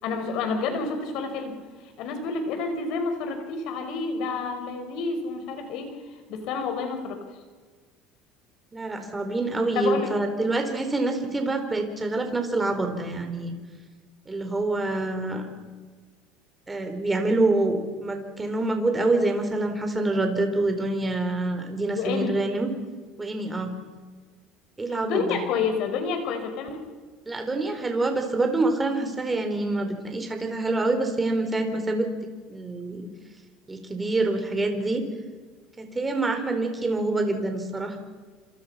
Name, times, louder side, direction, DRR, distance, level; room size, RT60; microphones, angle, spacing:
voice 1, 0.0-5.9 6.3-7.2 9.7-10.1 21.9-22.4 25.0-26.7, left 4 dB, 60° left, 6 dB, 5.4 m, -29 dB
voice 2, 8.7-13.5 14.3-15.5 16.7-22.7 23.2-23.7 24.8-25.4 27.3-32.1 32.5-33.1 33.7-35.0 35.8-38.0, right 2 dB, 15° right, 5 dB, 4.2 m, -26 dB
27.5 x 27.5 x 5.8 m, 1.4 s
cardioid pair, 140°, 0 cm